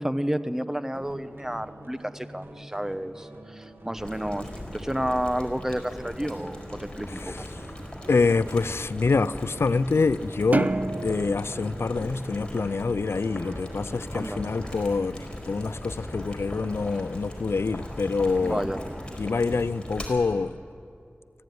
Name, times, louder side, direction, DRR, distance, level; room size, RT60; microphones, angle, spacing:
voice 1, 0.0-7.3 12.0-12.1 14.1-14.4 18.4-18.8, equal, 10° right, 1.0 m, -31 dB
sound 1, 0.9-15.1, right 1 dB, 65° right, 2.8 m, -45 dB
Boiling, 4.0-20.1, left 1 dB, 25° left, 4.6 m, -39 dB
voice 2, 7.1-7.5 8.1-10.7 11.0-18.6 19.2-20.6, left 4 dB, 85° left, 0.4 m, -26 dB
sound 2, 10.5-13.1, right 2 dB, 40° right, 0.6 m, -29 dB
24.0 x 16.0 x 9.4 m
wide cardioid pair, 65°, 4 cm